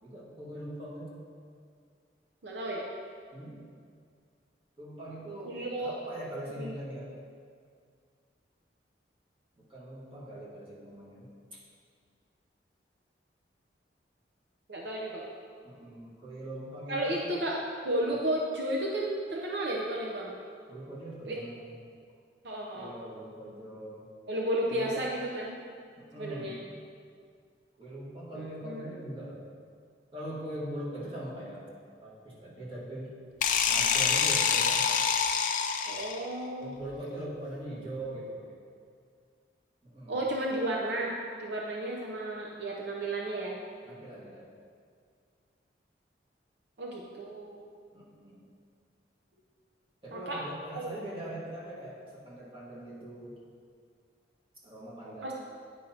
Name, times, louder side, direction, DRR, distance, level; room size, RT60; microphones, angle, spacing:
voice 1, 0.0-1.1 3.3-3.6 4.8-7.1 9.7-11.6 15.6-17.3 20.7-21.7 22.7-24.1 24.7-24.9 26.0-26.5 27.8-29.4 30.1-31.7 32.0-33.1 33.6-34.8 36.6-38.6 39.8-40.2 43.8-44.5 47.9-48.4 50.0-53.4 54.6-55.3, right 1 dB, 30° right, -7 dB, 1.6 m, -41 dB
voice 2, 2.4-2.8 5.4-6.0 6.5-6.7 14.7-15.2 16.9-17.6 17.8-20.3 21.3-21.4 22.4-22.9 24.3-25.6 26.2-26.6 28.3-28.9 35.9-36.7 40.1-43.6 46.8-47.7 50.1-50.4 50.7-50.9 55.2-55.3, right 1 dB, 70° right, -2 dB, 0.6 m, -33 dB
sound 1, 33.4-36.3, left 7 dB, 45° left, 0.4 m, -26 dB
9.2 x 5.4 x 2.8 m, 2.2 s
head